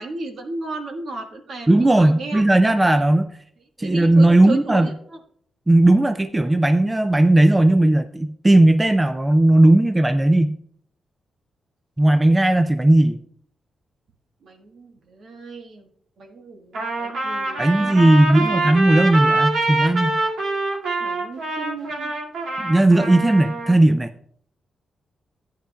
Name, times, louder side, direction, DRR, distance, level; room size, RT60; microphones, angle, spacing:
voice 1, 0.0-2.4 3.8-4.9 14.4-15.9 16.2-18.0 18.5-18.6 21.0-22.1, right 3 dB, 55° right, 4 dB, 1.4 m, -34 dB
voice 2, 1.7-3.3 3.8-4.9 5.7-10.5 12.0-13.2 17.6-20.2 22.6-24.1, right 1 dB, 10° right, 9 dB, 0.4 m, -16 dB
Trumpet, 16.7-23.8, right 2 dB, 90° right, 2.1 m, -24 dB
14.5 x 9.6 x 2.3 m, 0.64 s
wide cardioid pair, 145°, 0 cm